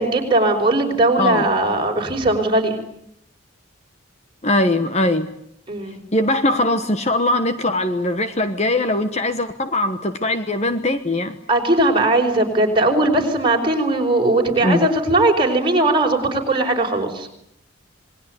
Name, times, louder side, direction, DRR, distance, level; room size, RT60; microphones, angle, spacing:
voice 1, 0.0-2.8 5.7-6.0 11.5-17.3, right 2 dB, 25° right, 2 dB, 5.0 m, -19 dB
voice 2, 4.4-5.3 6.1-11.4 14.6-14.9, left 1 dB, 30° left, 9 dB, 1.2 m, -21 dB
27.5 x 21.0 x 9.4 m, 0.75 s
head